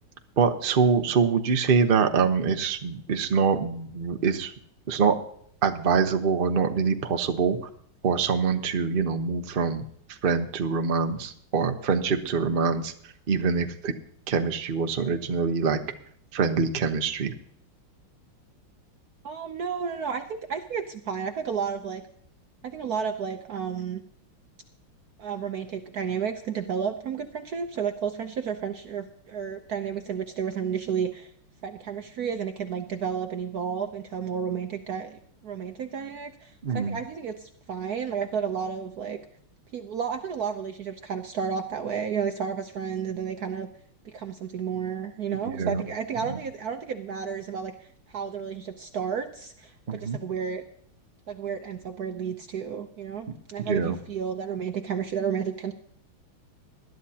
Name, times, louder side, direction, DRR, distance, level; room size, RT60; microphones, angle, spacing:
voice 1, 0.4-4.5 4.9-5.2 5.6-7.6 8.0-9.8 10.1-12.9 13.3-13.9 14.3-15.8 16.3-17.3 36.6-37.0 45.5-45.8 49.9-50.2 53.6-54.0, right 5 dB, 45° right, 6 dB, 0.7 m, -24 dB
voice 2, 19.2-22.0 22.6-24.0 25.2-31.3 31.6-39.2 39.7-43.7 44.0-50.6 51.3-55.7, right 7 dB, 65° right, 6 dB, 1.0 m, -32 dB
20.0 x 12.0 x 2.8 m, 0.65 s
omnidirectional pair, 2.3 m